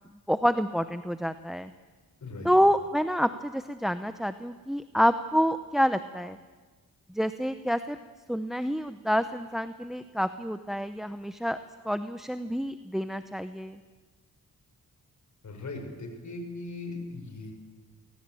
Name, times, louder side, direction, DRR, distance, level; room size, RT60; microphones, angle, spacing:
voice 1, 0.3-1.7 2.4-6.4 7.1-8.0 8.3-11.6 11.8-13.8, equal, ahead, 11 dB, 0.7 m, -27 dB
voice 2, 15.4-17.5, left 2 dB, 55° left, 4 dB, 5.8 m, -39 dB
22.5 x 18.5 x 7.7 m, 1.4 s
cardioid pair, 75°, 35 cm